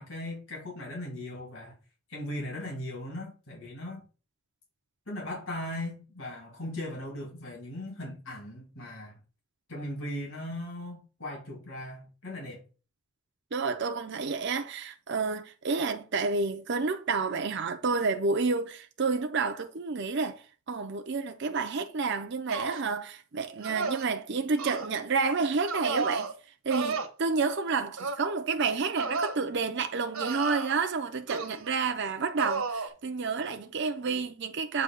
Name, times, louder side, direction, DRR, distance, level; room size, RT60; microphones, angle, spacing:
voice 1, 0.0-1.8 2.1-4.0 5.1-9.2 9.7-12.7, left 1 dB, 60° left, 2.7 m, -38 dB
voice 2, 13.5-26.3 26.6-34.8, right 4 dB, 50° right, 0.6 m, -30 dB
sound 1, 22.5-22.9 23.6-24.1 24.6-24.9 25.7-26.3 26.7-27.1 28.0-28.3 29.0-29.4 30.1-30.9 31.3-31.7 32.4-32.9, right 4 dB, 75° right, 1.1 m, -32 dB
7.8 x 2.9 x 5.3 m
head